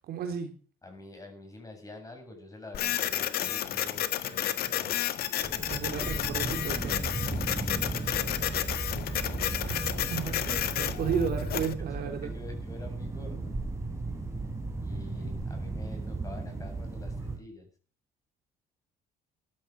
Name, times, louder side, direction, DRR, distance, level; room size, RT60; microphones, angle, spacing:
voice 1, 0.1-0.5 5.7-7.0 9.5-12.3, right 7 dB, 65° right, 5 dB, 3.6 m, -34 dB
voice 2, 0.8-5.0 7.5-8.5 11.8-13.6 14.8-17.7, left 2 dB, 20° left, 4 dB, 7.6 m, -47 dB
Printer, 2.7-11.7, left 11 dB, 65° left, 1.5 m, -31 dB
sound 1, 5.4-17.4, right 3 dB, 15° right, 4.9 m, -35 dB
Hiss, 6.3-10.5 11.5-11.6, left 8 dB, 90° left, 5.1 m, -60 dB
14.5 x 12.0 x 6.0 m, 0.39 s
cardioid pair, 110°, 17 cm